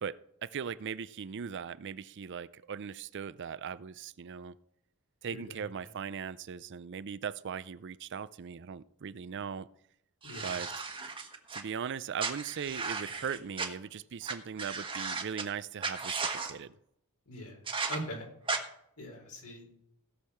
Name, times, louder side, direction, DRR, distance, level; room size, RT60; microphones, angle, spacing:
voice 1, 0.0-4.6 5.2-9.7 10.4-10.7 11.5-16.7, right 7 dB, 55° right, 17 dB, 0.4 m, -39 dB
voice 2, 5.3-5.9 10.2-10.5 17.3-17.6 17.9-18.3 19.0-19.8, equal, 85° left, 1 dB, 4.6 m, -42 dB
sound 1, 10.2-11.6 12.2-13.7 14.3-14.4 14.6-15.4 15.8-16.5 17.7-18.0 18.5-18.6, right 4 dB, 25° right, 1.2 m, -35 dB
16.5 x 6.6 x 5.8 m, 0.75 s
head